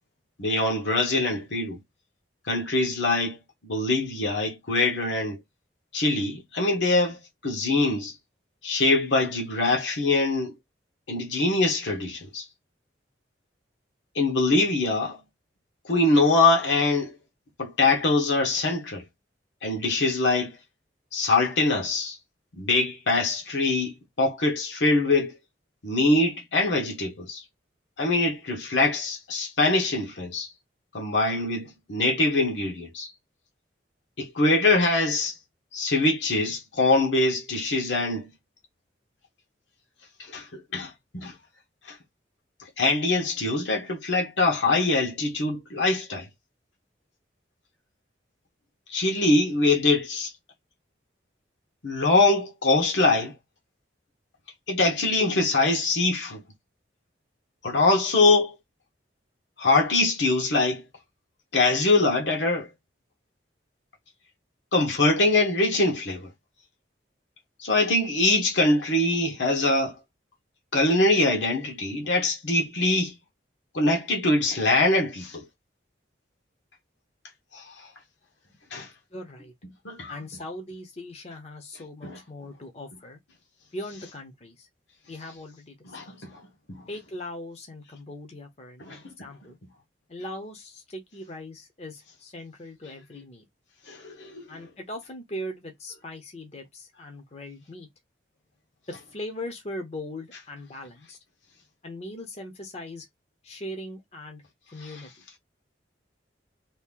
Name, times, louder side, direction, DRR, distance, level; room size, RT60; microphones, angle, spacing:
voice 1, 0.4-1.8 2.5-3.4 3.6-5.4 5.9-8.1 8.6-10.5 11.1-12.4 14.1-15.2 15.8-17.1 17.6-19.0 19.6-20.6 21.1-22.2 22.6-25.4 25.8-27.4 28.0-30.5 30.9-33.1 34.2-35.3 35.7-38.3 40.3-41.3 42.8-46.3 48.9-50.3 51.8-53.3 54.7-56.4 57.6-58.5 59.6-60.8 61.5-62.7 64.7-66.3 67.6-69.9 70.7-73.2 73.7-75.4 77.5-77.6 78.7-78.9 79.8-80.1 82.0-82.2 85.9-86.3 86.7-86.9 88.8-89.1 93.9-94.5 104.8-104.9, left 2 dB, 75° left, 1.1 m, -23 dB
voice 2, 78.8-79.5 80.1-83.2 83.7-84.7 85.1-86.2 86.9-89.6 90.1-93.4 94.5-97.9 98.9-101.2 101.8-103.1 103.4-104.4 104.7-105.1, left 1 dB, 35° left, 0.7 m, -40 dB
2.8 x 2.6 x 3.6 m
head